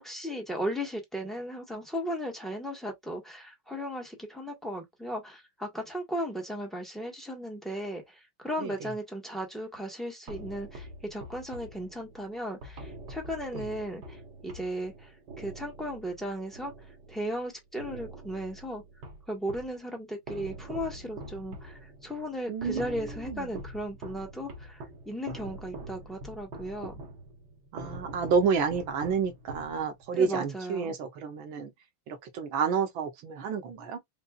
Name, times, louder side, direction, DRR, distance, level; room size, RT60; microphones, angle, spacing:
voice 1, 0.0-15.1 15.4-16.7 17.1-18.8 19.3-27.0 30.1-30.9, equal, ahead, 1.3 m, -36 dB
voice 2, 8.6-8.9 13.5-13.7 22.5-22.9 23.3-23.5 27.7-31.7 32.1-34.0, right 5 dB, 85° right, 1.8 m, -30 dB
sound 1, 10.3-17.4 17.8-19.8 20.3-30.2, right 1 dB, 60° right, 1.9 m, -44 dB
5.4 x 2.7 x 2.4 m
omnidirectional pair, 2.1 m